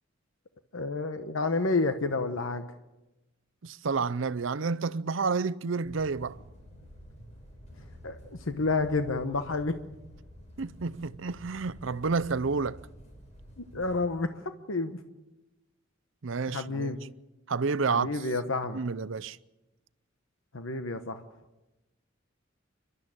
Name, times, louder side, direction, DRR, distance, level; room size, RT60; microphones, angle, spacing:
voice 1, 0.7-2.7 8.0-9.7 13.6-14.3 14.7-15.0 16.5-17.0 17.9-18.8 20.5-21.2, left 3 dB, 85° left, 1.0 m, -30 dB
voice 2, 3.6-6.4 10.6-12.8 16.2-17.0 17.5-18.1 18.7-19.4, right 4 dB, 70° right, 0.6 m, -30 dB
sound 1, 5.8-14.0, equal, 35° left, 6.6 m, -50 dB
28.5 x 12.5 x 8.8 m
head